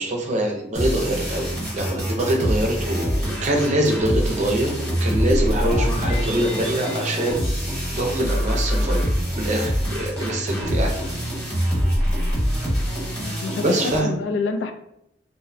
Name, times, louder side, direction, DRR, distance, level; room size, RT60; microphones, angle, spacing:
voice 1, 0.0-1.5 1.7-7.4 7.9-9.1 9.4-10.9 13.6-14.1, right 1 dB, 40° right, 1 dB, 0.5 m, -24 dB
sound 1, 0.7-14.0, equal, 5° left, 1.0 m, -24 dB
sound 2, 5.1-8.3, equal, 35° left, 0.6 m, -32 dB
voice 2, 13.3-14.7, left 4 dB, 80° left, 6 dB, 0.3 m, -28 dB
2.5 x 2.1 x 2.5 m, 0.77 s
head